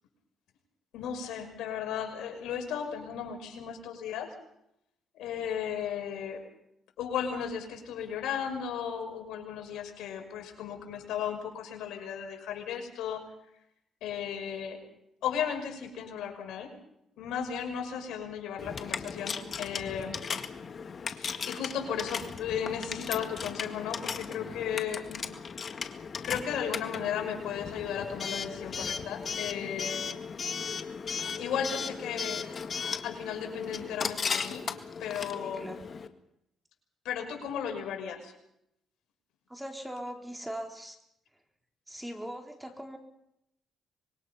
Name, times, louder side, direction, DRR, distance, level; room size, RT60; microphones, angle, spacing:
voice 1, 0.9-4.3 5.2-6.4 7.0-13.2 14.0-14.8 15.2-16.7 17.2-20.2 21.1-25.2 26.2-30.0 31.4-32.5 33.0-34.7 35.0-35.6 37.0-38.3, left 8 dB, 85° left, 3 dB, 5.8 m, -35 dB
Coin (dropping) / Alarm, 18.6-36.1, left 6 dB, 45° left, 1.8 m, -36 dB
voice 2, 35.4-35.9 39.5-41.0 41.9-43.0, equal, 5° right, 3 dB, 3.6 m, -40 dB
25.5 x 22.5 x 5.7 m, 0.80 s
cardioid pair, 90°, 0 cm